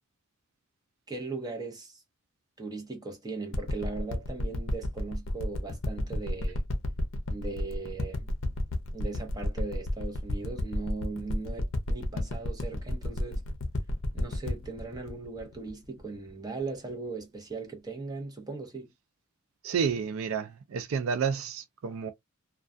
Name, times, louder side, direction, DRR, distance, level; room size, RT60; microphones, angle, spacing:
voice 1, 1.1-2.0 2.6-6.6 7.3-8.3 8.9-13.4 14.1-18.9, right 3 dB, 20° right, 0.7 m, -38 dB
sound 1, 3.5-16.3 16.9-17.0, left 1 dB, 60° left, 0.6 m, -31 dB
voice 2, 19.6-22.1, right 6 dB, 75° right, 0.4 m, -30 dB
2.3 x 2.3 x 2.4 m
head